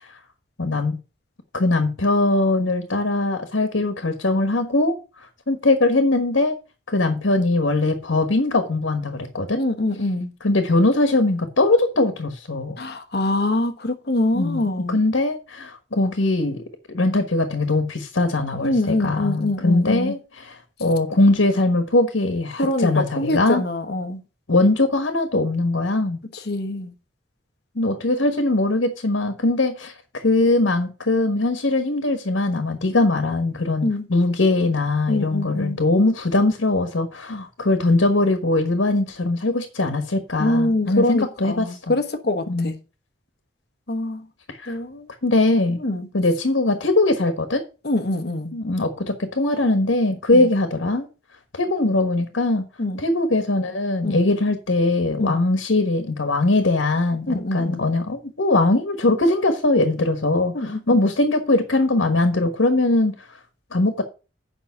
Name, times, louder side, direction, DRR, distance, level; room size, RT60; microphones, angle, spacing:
voice 1, 0.6-1.0 1.5-4.9 5.5-6.5 6.9-9.6 10.4-12.8 14.3-16.6 16.9-23.6 24.5-26.2 27.7-42.0 42.5-42.7 44.6-44.7 45.2-45.8 46.1-47.6 48.5-51.1 51.5-52.6 53.0-63.1 63.7-64.0, left 2 dB, 85° left, 1.4 m, -21 dB
voice 2, 9.5-10.3 12.8-15.0 18.6-20.2 22.6-24.2 26.5-26.9 33.8-34.1 35.1-35.8 40.4-42.8 43.9-44.2 44.7-45.1 45.8-46.1 47.8-48.6 50.3-50.5 52.8-53.0 54.0-54.3 55.2-55.4 57.3-57.9 60.5-60.8, left 1 dB, 55° left, 1.1 m, -24 dB
8.3 x 5.5 x 5.6 m
head